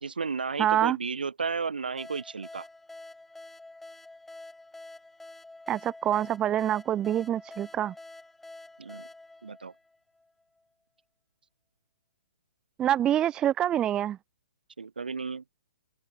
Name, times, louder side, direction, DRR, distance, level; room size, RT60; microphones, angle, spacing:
voice 1, 0.0-2.7 8.8-9.1 9.4-9.7 14.8-15.4, right 5 dB, 70° right, 0.7 m, -33 dB
voice 2, 0.6-1.0 5.7-7.9 12.8-14.2, right 11 dB, 15° right, 0.4 m, -26 dB
sound 1, 2.0-10.4, left 2 dB, 5° left, 2.4 m, -48 dB
figure-of-eight pair, 130°, 5 cm